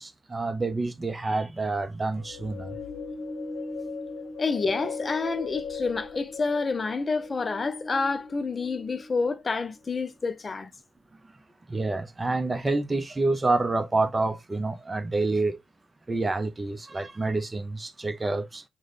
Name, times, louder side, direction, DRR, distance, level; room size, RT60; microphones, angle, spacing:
voice 1, 0.0-2.8 11.7-15.6 16.1-18.6, right 3 dB, 25° right, 0.6 m, -28 dB
sound 1, 2.1-9.5, left 4 dB, 70° left, 0.7 m, -38 dB
voice 2, 4.4-10.7, left 4 dB, 35° left, 0.4 m, -28 dB
3.6 x 2.2 x 3.3 m
hypercardioid pair, 45°, 0 cm